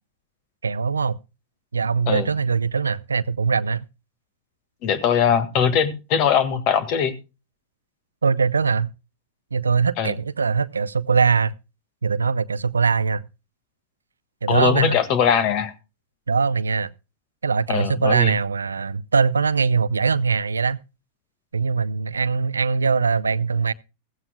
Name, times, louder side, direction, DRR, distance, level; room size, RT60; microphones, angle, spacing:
voice 1, 0.6-1.2 1.7-3.8 8.2-8.9 9.5-11.5 12.0-13.2 14.4-15.0 16.3-16.9 17.4-20.8 21.5-23.7, right 5 dB, 90° right, 0.5 m, -21 dB
voice 2, 4.8-7.1 10.0-10.1 14.5-15.7 17.7-18.3, left 8 dB, 50° left, 1.7 m, -21 dB
15.5 x 15.0 x 2.2 m
hypercardioid pair, 105°, 0 cm